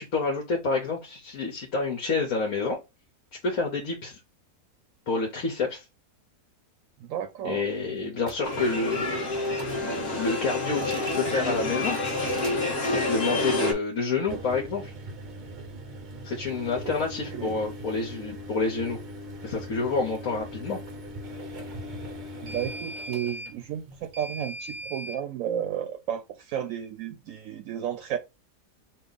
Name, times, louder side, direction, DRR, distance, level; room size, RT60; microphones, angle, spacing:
voice 1, 0.0-2.8 3.4-4.2 5.1-5.8 7.4-9.3 9.8-12.0 12.9-14.9 16.2-19.0 19.4-20.8, left 4 dB, 65° left, 1.4 m, -28 dB
voice 2, 7.0-7.6 16.8-16.9 17.3-17.6 22.4-28.2, right 10 dB, 70° right, 1.0 m, -33 dB
sound 1, 8.2-8.4 9.4-9.8 10.7-11.4 11.9-12.6 14.2-25.2, equal, 45° right, 0.6 m, -40 dB
sound 2, 8.4-13.7, left 2 dB, 40° left, 1.3 m, -28 dB
5.4 x 2.3 x 3.9 m
omnidirectional pair, 1.6 m